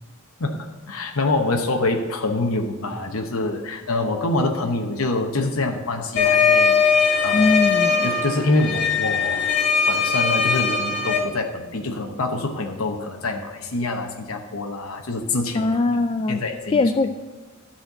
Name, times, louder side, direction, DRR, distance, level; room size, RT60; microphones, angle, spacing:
voice 1, 0.4-7.6 8.0-9.5 9.9-15.8 16.3-16.8, left 2 dB, 75° left, 3 dB, 0.9 m, -25 dB
sound 1, 6.2-11.2, left 5 dB, 50° left, 2.3 m, -20 dB
voice 2, 7.3-8.1 15.5-16.4 16.7-17.1, left 3 dB, 25° left, 8 dB, 0.3 m, -21 dB
12.0 x 4.4 x 7.8 m, 1.2 s
head